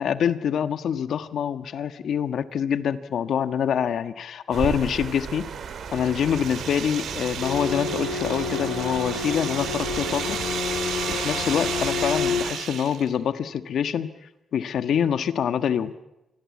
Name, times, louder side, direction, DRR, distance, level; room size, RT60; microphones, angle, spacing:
voice 1, 0.0-5.5 5.9-10.4 11.1-14.1 14.5-15.9, left 8 dB, 70° left, 11 dB, 1.4 m, -25 dB
sound 1, 4.5-12.5, right 6 dB, 65° right, 2.8 m, -36 dB
sound 2, 5.4-13.2, right 9 dB, 80° right, 2.6 m, -34 dB
sound 3, 7.4-12.4, left 5 dB, 90° left, 3.2 m, -29 dB
26.5 x 21.5 x 8.5 m, 0.94 s
cardioid pair, 80°, 0 cm